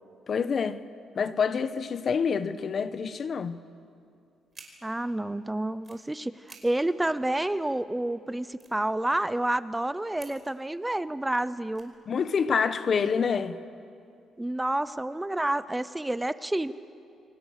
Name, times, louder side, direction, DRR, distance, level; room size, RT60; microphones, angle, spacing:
voice 1, 0.3-0.8 1.2-3.6 12.1-13.6, left 6 dB, 50° left, 1.0 m, -27 dB
sound 1, 4.5-4.7 5.6-6.0 6.4-6.6 6.9-7.0 7.2-7.8 8.2-8.3 8.5-9.5 10.1-10.7 11.1-11.3 11.7-12.5, right 4 dB, 30° right, 5.0 m, -52 dB
voice 2, 4.8-11.9 14.4-16.7, right 1 dB, 10° right, 0.7 m, -29 dB
28.0 x 24.5 x 6.7 m
cardioid pair, 90°, 0 cm